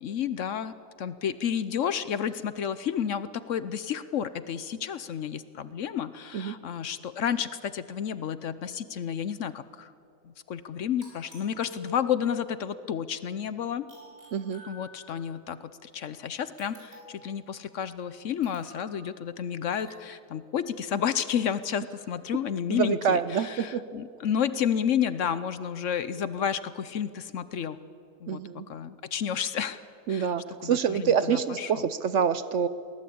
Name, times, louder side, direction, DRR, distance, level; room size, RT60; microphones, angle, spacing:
voice 1, 0.0-9.9 10.2-13.9 14.6-27.8 28.2-29.8 30.1-30.3 30.6-31.8, left 8 dB, 60° left, 14 dB, 1.0 m, -31 dB
sound 1, 11.0-12.4 13.9-15.3 16.6-17.3 18.4-19.0 19.7-20.1, equal, 40° right, 7.0 m, -49 dB
voice 2, 14.3-14.6 22.7-23.8 28.3-28.7 30.1-32.7, right 7 dB, 60° right, 14 dB, 0.9 m, -26 dB
23.5 x 18.0 x 8.6 m, 2.5 s
omnidirectional pair, 1.6 m